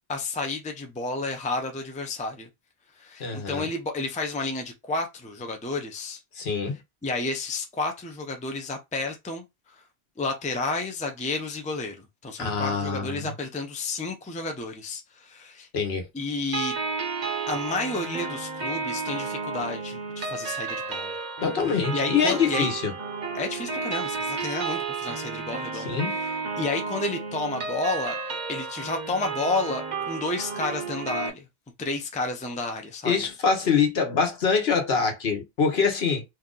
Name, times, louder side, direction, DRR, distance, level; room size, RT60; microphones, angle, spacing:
voice 1, 0.1-2.5 3.0-6.2 7.0-9.8 10.2-12.0 12.2-15.7 16.1-16.7 17.5-21.1 21.7-22.7 23.3-28.2 28.5-31.5 31.8-33.1, left 3 dB, 10° left, 0.4 m, -31 dB
voice 2, 3.2-3.7 6.3-6.8 12.4-13.3 15.7-16.0 21.4-22.9 25.7-26.1 33.0-36.2, left 5 dB, 70° left, 1.2 m, -24 dB
sound 1, 16.5-31.3, right 4 dB, 50° right, 0.7 m, -32 dB
2.8 x 2.5 x 3.7 m
omnidirectional pair, 1.1 m